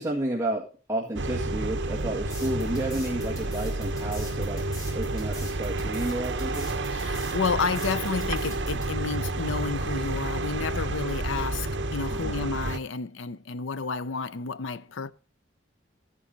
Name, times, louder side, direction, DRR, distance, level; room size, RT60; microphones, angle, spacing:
voice 1, 0.0-4.7 4.9-6.7 12.1-12.5, right 1 dB, 15° right, 1.7 m, -31 dB
sound 1, 1.2-12.8, right 2 dB, 75° right, 0.9 m, -30 dB
sound 2, 2.3-8.9, equal, 20° left, 5.1 m, -44 dB
voice 2, 6.9-15.1, left 5 dB, 90° left, 0.6 m, -31 dB
13.5 x 9.9 x 3.9 m
head